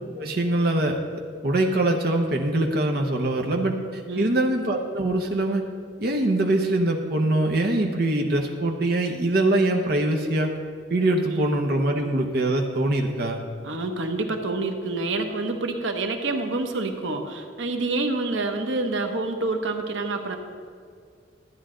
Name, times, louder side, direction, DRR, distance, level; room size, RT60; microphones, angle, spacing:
voice 1, 0.1-1.0 1.4-5.6 6.0-10.6 10.9-13.4, right 1 dB, 50° right, 2 dB, 0.8 m, -23 dB
voice 2, 13.6-20.4, right 2 dB, 85° right, 5 dB, 0.9 m, -27 dB
12.5 x 9.4 x 3.8 m, 2.3 s
head